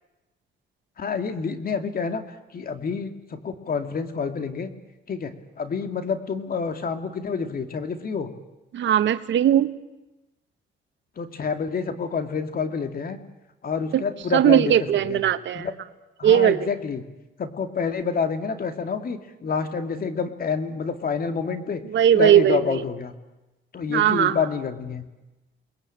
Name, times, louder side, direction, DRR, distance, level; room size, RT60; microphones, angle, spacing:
voice 1, 1.0-2.2 2.5-4.7 5.1-8.3 11.2-13.2 13.6-14.7 15.1-15.2 15.5-15.7 16.2-17.0 17.4-21.8 22.1-23.1 23.7-25.0, left 5 dB, 45° left, 8 dB, 2.5 m, -28 dB
voice 2, 8.7-9.7 13.9-14.0 14.3-15.7 16.2-16.7 21.9-22.8 23.9-24.4, right 10 dB, 70° right, 12 dB, 1.3 m, -19 dB
28.5 x 21.0 x 8.8 m, 1.0 s
cardioid pair, 90°, 20 cm